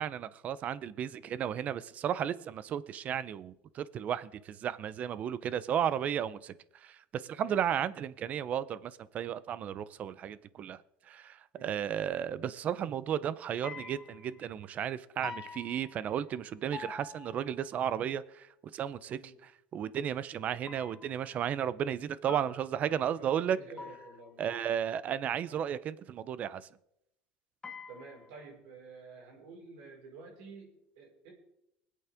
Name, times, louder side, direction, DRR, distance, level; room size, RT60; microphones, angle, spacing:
voice 1, 0.0-6.5 6.8-10.8 11.1-18.5 18.7-19.2 19.7-23.6 24.4-26.6, right 9 dB, 40° right, 0.6 m, -34 dB
voice 2, 7.4-7.8 11.5-11.8 19.2-19.4 22.9-24.7 25.4-25.6 27.9-31.3, right 4 dB, 85° right, 5.0 m, -51 dB
sound 1, 13.6-14.5 15.2-16.4 16.7-17.8 20.7-21.3 22.3-23.0 23.8-24.5 27.6-28.5, left 4 dB, 15° left, 1.4 m, -46 dB
24.0 x 8.5 x 3.6 m
cardioid pair, 135°, 4 cm